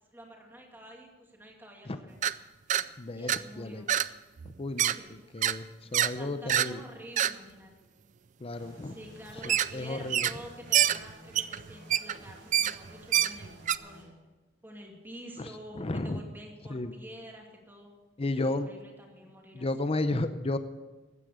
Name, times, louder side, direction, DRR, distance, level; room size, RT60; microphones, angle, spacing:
voice 1, 0.1-2.2 3.1-4.0 4.8-5.2 6.1-7.7 8.8-13.5 13.8-14.2 14.6-18.0 18.4-19.7, equal, 10° right, 0 dB, 2.4 m, -48 dB
sound 1, 2.2-2.3 2.7-2.8 3.3-3.4 3.9-4.1 4.4-5.0 5.4-5.6 5.9-6.1 6.5-6.7 7.2-7.3 9.4-9.7 10.1-10.5 10.7-13.8, right 11 dB, 40° right, 0.4 m, -26 dB
voice 2, 3.0-3.8 4.6-4.9 5.3-5.7 5.9-6.8 8.4-9.0 9.7-10.3 15.8-16.2 16.7-16.9 18.2-18.7 19.6-20.6, left 2 dB, 30° left, 11 dB, 0.6 m, -32 dB
sound 2, 8.5-14.1, equal, 85° right, 5.5 m, -53 dB
15.0 x 9.7 x 6.6 m, 1.2 s
head